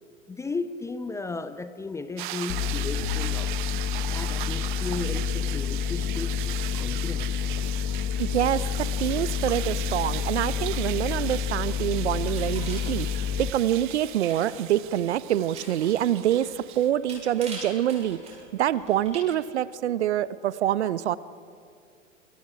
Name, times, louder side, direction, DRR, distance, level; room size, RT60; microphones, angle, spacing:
voice 1, 0.3-3.5 4.1-6.3 6.8-7.3, left 3 dB, 5° left, 12 dB, 0.6 m, -35 dB
sound 1, 2.2-16.9, right 17 dB, 40° right, 0.5 m, -38 dB
sound 2, 2.5-13.5, left 8 dB, 30° left, 1.1 m, -29 dB
voice 2, 8.2-18.2 18.5-21.2, right 11 dB, 55° right, 18 dB, 0.8 m, -26 dB
sound 3, 11.9-19.2, right 3 dB, 15° right, 7.1 m, -46 dB
28.5 x 27.0 x 4.9 m, 2.4 s
figure-of-eight pair, 95°, 40 cm